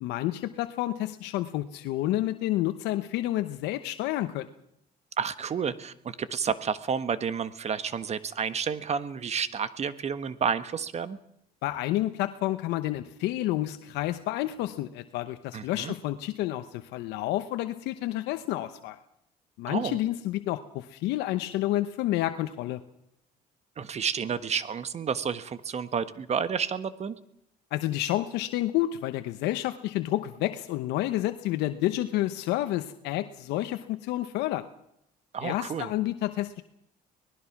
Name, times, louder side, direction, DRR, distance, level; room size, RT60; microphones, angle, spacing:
voice 1, 0.0-4.5 11.6-19.0 19.6-22.8 27.7-34.7 35.4-36.6, left 15 dB, 90° left, 9 dB, 0.9 m, -29 dB
voice 2, 5.2-11.2 15.5-15.9 19.7-20.0 23.8-27.2 35.3-35.9, right 7 dB, 40° right, 13 dB, 1.4 m, -30 dB
25.0 x 19.0 x 6.0 m, 0.77 s
cardioid pair, 110°, 17 cm